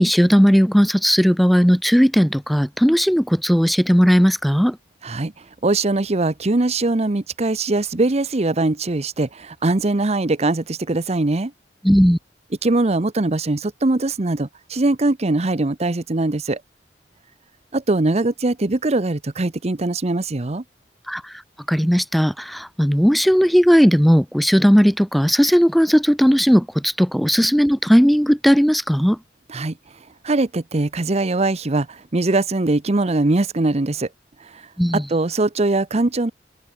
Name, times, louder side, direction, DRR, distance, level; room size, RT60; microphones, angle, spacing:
voice 1, 0.0-4.8 11.8-12.2 21.1-21.4 21.7-29.2 34.8-35.1, equal, ahead, 0.3 m, -16 dB
voice 2, 5.0-11.5 12.6-16.6 17.7-20.6 29.5-29.8 30.2-34.1 34.4-34.6 34.9-36.3, right 2 dB, 35° right, 0.8 m, -21 dB
head